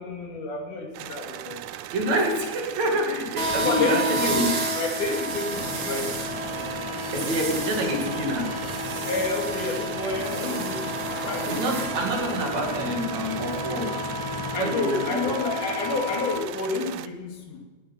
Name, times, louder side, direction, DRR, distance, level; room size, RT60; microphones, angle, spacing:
voice 1, 0.0-1.7 3.6-6.1 9.0-11.6 14.5-17.6, left 3 dB, 85° left, 2 dB, 3.8 m, -29 dB
sound 1, 0.9-17.1, right 12 dB, 80° right, 2.2 m, -38 dB
voice 2, 1.9-4.5 7.1-8.6 11.5-14.1 14.4-15.5, equal, 65° right, 1 dB, 3.8 m, -27 dB
sound 2, 3.4-16.4, equal, 40° right, 2.5 m, -31 dB
sound 3, 5.5-14.6, left 2 dB, 40° left, 2.5 m, -38 dB
19.5 x 10.0 x 5.7 m, 1.3 s
omnidirectional pair, 3.5 m